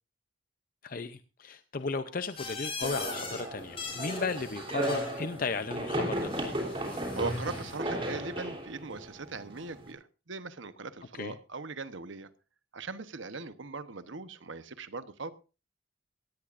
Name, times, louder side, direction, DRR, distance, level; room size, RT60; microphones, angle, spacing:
voice 1, 0.8-6.3 11.1-11.3, left 4 dB, 45° left, 10 dB, 0.6 m, -35 dB
sound 1, 2.4-3.4 3.7-5.2 6.2-7.8, left 4 dB, 30° left, 5.6 m, -41 dB
sound 2, 2.8-9.9, right 1 dB, 25° right, 3.4 m, -35 dB
voice 2, 6.8-12.3 12.7-15.3, right 4 dB, 70° right, 12 dB, 1.0 m, -40 dB
17.5 x 17.0 x 2.6 m, 0.33 s
head